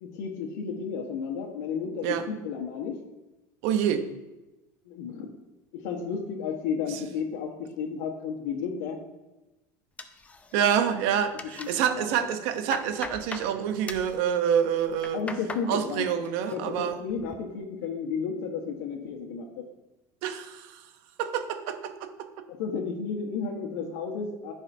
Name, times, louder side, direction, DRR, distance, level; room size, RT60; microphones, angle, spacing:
voice 1, 0.0-3.0 4.8-5.3 5.7-9.0 10.8-10.9 11.6-12.3 15.1-16.1 16.5-19.6 22.5-24.5, left 6 dB, 80° left, -1 dB, 1.4 m, -33 dB
voice 2, 3.6-4.1 10.5-15.2 15.7-17.0 20.2-20.8 21.2-22.1, right 8 dB, 65° right, 7 dB, 0.9 m, -27 dB
sound 1, 10.0-10.8 11.1-11.9 12.3-13.5 13.9-14.2 14.8-15.7 16.0-16.6 16.9-17.4, left 4 dB, 15° left, 0.5 m, -40 dB
14.5 x 4.9 x 2.8 m, 1.0 s
supercardioid pair, 130°, 10 cm